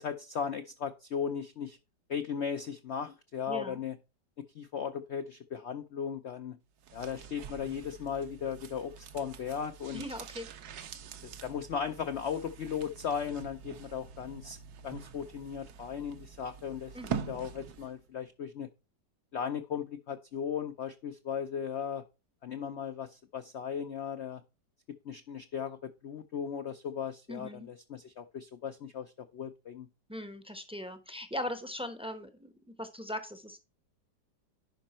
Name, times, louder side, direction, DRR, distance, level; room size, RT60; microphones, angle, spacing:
voice 1, 0.0-1.8 2.1-4.0 4.5-6.6 6.9-10.0 11.2-14.6 14.8-18.7 19.3-22.0 22.4-24.4 25.0-29.9, left 7 dB, 75° left, 9 dB, 0.6 m, -37 dB
voice 2, 3.5-3.8 9.9-10.5 16.9-17.2 27.3-27.7 30.1-33.6, left 1 dB, 5° right, 9 dB, 0.5 m, -39 dB
sound 1, 6.8-18.0 18.3-18.4, right 8 dB, 65° right, 1.2 m, -44 dB
10.5 x 5.1 x 4.3 m, 0.29 s
omnidirectional pair, 1.9 m